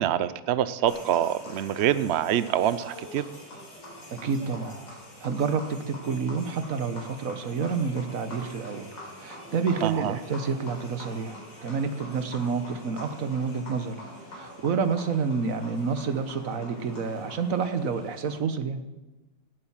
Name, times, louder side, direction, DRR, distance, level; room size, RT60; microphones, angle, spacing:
voice 1, 0.0-3.2 9.8-10.2, right 11 dB, 85° right, 14 dB, 0.5 m, -25 dB
sound 1, 0.9-18.4, left 1 dB, 75° left, 4.8 m, -44 dB
voice 2, 4.1-4.8 5.2-8.9 9.2-14.0 14.3-18.8, right 5 dB, 50° right, 10 dB, 1.4 m, -29 dB
18.0 x 8.8 x 7.4 m, 1.1 s
omnidirectional pair, 2.0 m